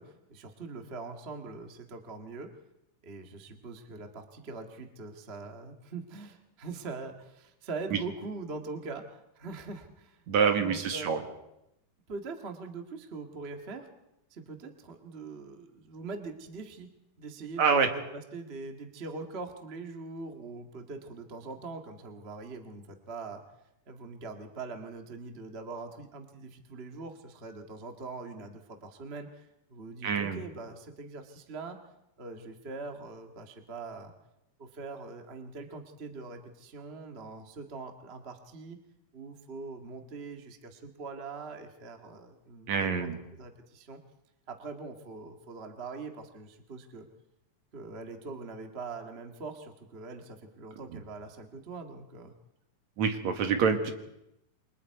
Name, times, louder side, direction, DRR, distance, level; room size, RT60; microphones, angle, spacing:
voice 1, 0.0-2.5 3.0-10.2 10.6-11.3 12.1-13.9 14.3-16.9 17.2-23.4 23.9-31.8 32.2-34.1 34.6-38.8 39.1-43.1 43.4-44.0 44.5-47.1 47.7-52.3, right 3 dB, 30° right, 4 dB, 1.3 m, -42 dB
voice 2, 10.3-11.2 17.6-17.9 30.0-30.4 42.7-43.2 53.0-53.9, right 6 dB, 65° right, 5 dB, 2.8 m, -26 dB
28.5 x 24.0 x 4.7 m, 0.85 s
omnidirectional pair, 3.6 m